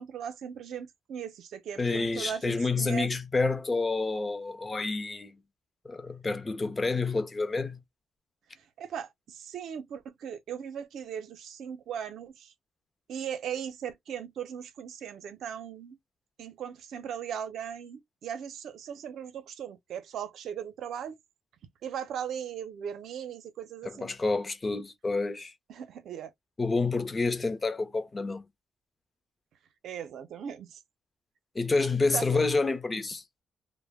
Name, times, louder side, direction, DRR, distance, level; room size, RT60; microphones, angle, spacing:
voice 1, 0.0-3.1 8.5-12.5 13.1-16.0 16.4-21.2 21.8-24.1 25.7-26.3 29.8-30.8 32.1-32.5, right 8 dB, 70° right, 0.6 m, -38 dB
voice 2, 1.8-5.4 5.8-7.8 23.8-25.5 26.6-28.4 31.5-33.2, left 3 dB, 25° left, 0.6 m, -28 dB
2.2 x 2.1 x 3.4 m
cardioid pair, 90°, 0 cm